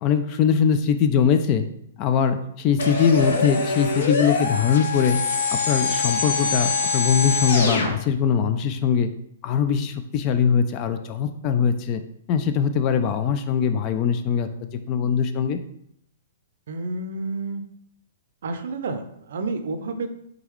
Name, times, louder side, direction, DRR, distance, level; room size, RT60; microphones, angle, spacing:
voice 1, 0.0-1.6 2.0-5.2 5.5-9.1 9.4-12.0 12.3-14.5 14.9-15.6, left 7 dB, 30° left, 9 dB, 0.3 m, -21 dB
sound 1, 2.8-7.9, left 4 dB, 70° left, 0.8 m, -24 dB
voice 2, 16.7-17.6 18.4-20.1, right 3 dB, 70° right, 8 dB, 0.5 m, -30 dB
3.8 x 3.4 x 3.1 m, 0.71 s
hypercardioid pair, 150°, 0 cm